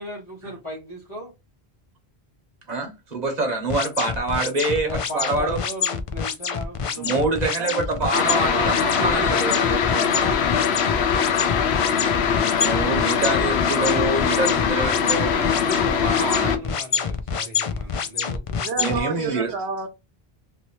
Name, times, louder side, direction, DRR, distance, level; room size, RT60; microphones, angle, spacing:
voice 1, 0.0-1.3 4.8-7.3 8.9-13.3 15.5-19.3, right 1 dB, 30° left, 1.1 m, -37 dB
voice 2, 2.7-5.6 7.0-9.5 12.6-16.5 18.8-19.5, right 2 dB, 45° right, 1.1 m, -26 dB
sound 1, 3.7-19.0, left 6 dB, 60° left, 0.3 m, -27 dB
voice 3, 7.6-9.1 18.6-19.9, right 4 dB, 80° right, 0.9 m, -30 dB
sound 2, 8.1-16.6, left 7 dB, 85° left, 0.9 m, -22 dB
3.0 x 2.7 x 2.8 m
omnidirectional pair, 1.1 m